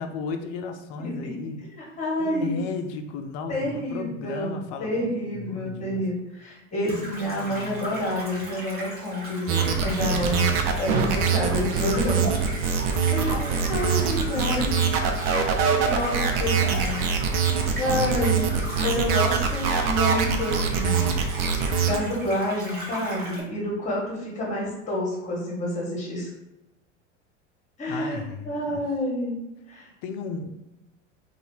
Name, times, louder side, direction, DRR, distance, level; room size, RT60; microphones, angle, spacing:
voice 1, 0.0-1.6 2.2-6.1 6.8-8.1 10.1-10.6 12.8-13.0 13.3-14.1 14.3-15.0 17.7-18.4 27.9-28.8 30.0-30.5, left 5 dB, 40° left, 6 dB, 0.4 m, -35 dB
voice 2, 1.8-2.5 3.5-10.5 10.7-12.4 13.1-14.6 15.9-17.0 17.7-21.1 21.8-26.3 27.8-29.4 29.7-29.9, left 1 dB, 20° left, -3 dB, 1.3 m, -29 dB
sound 1, 6.9-23.4, right 1 dB, 25° right, 1.2 m, -37 dB
sound 2, 9.5-22.0, right 6 dB, 50° right, 0.5 m, -24 dB
2.7 x 2.3 x 3.1 m, 0.93 s
hypercardioid pair, 80°, 37 cm